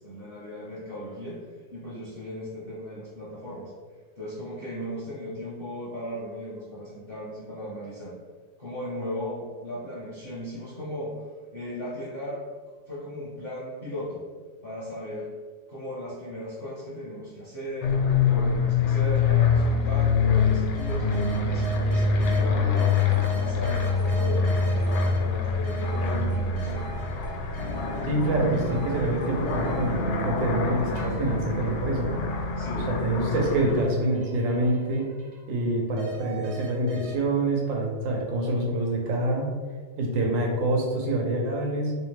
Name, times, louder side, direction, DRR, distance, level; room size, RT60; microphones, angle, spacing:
voice 1, 0.0-1.4 1.7-3.7 4.2-8.1 8.6-11.1 11.5-12.4 12.9-14.2 14.6-15.3 15.7-17.9 18.2-21.1 21.4-23.0 23.3-26.8 32.6-32.9, equal, 55° left, -8 dB, 0.6 m, -36 dB
sound 1, 17.8-33.8, left 4 dB, 75° left, 1.2 m, -25 dB
sound 2, 19.3-19.4 20.0-22.4 22.8-25.2 25.6-28.3 28.5-30.6 30.9-35.6 36.0-37.1, right 1 dB, 65° right, 0.9 m, -42 dB
voice 2, 28.0-32.3 32.9-35.1 35.5-39.5 40.0-42.0, right 1 dB, 90° right, 0 dB, 1.5 m, -26 dB
3.5 x 3.1 x 3.2 m, 1.5 s
omnidirectional pair, 2.0 m